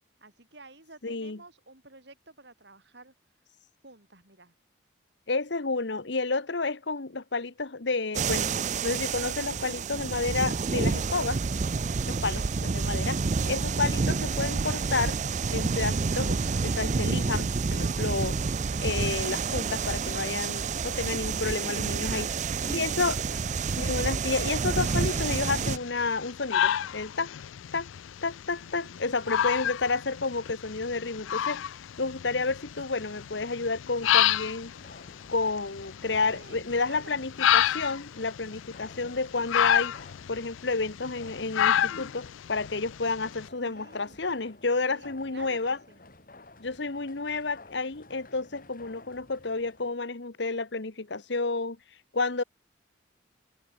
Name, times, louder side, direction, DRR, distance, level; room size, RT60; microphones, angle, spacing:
voice 1, 0.2-3.1 3.8-4.5 12.2-12.6 22.0-24.1 28.6-29.0 36.0-37.2 43.6-44.2 44.9-46.0, right 3 dB, 60° right, 4.7 m, -51 dB
voice 2, 1.0-1.4 5.3-8.5 8.8-11.4 12.1-13.2 13.5-15.2 15.5-18.4 18.8-22.3 22.7-23.2 23.8-27.3 27.7-27.9 28.2-31.6 32.0-34.7 35.3-40.0 40.3-45.8 46.6-51.8 52.1-52.4, left 3 dB, 60° left, 1.2 m, -30 dB
sound 1, 8.1-25.8, right 4 dB, 35° right, 0.4 m, -29 dB
sound 2, 24.8-43.5, left 10 dB, 80° left, 0.4 m, -30 dB
sound 3, 34.6-49.9, left 2 dB, 45° left, 2.5 m, -53 dB
open air
head